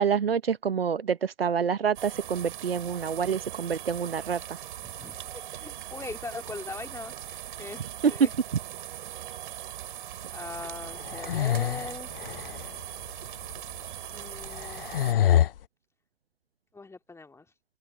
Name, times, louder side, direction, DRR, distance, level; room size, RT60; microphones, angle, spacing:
voice 1, 0.0-4.6 8.0-8.1, right 7 dB, 75° right, 1.0 m, -27 dB
sound 1, 1.9-15.1, right 11 dB, 60° right, 7.2 m, -40 dB
voice 2, 4.8-7.8 8.1-8.3 10.2-12.1 14.1-14.9 16.7-17.5, left 3 dB, 10° left, 3.0 m, -41 dB
Schnarchen - Frau, 10.9-12.7 13.5-13.6 14.4-15.5, left 11 dB, 70° left, 0.6 m, -26 dB
open air
figure-of-eight pair, 90°, 29 cm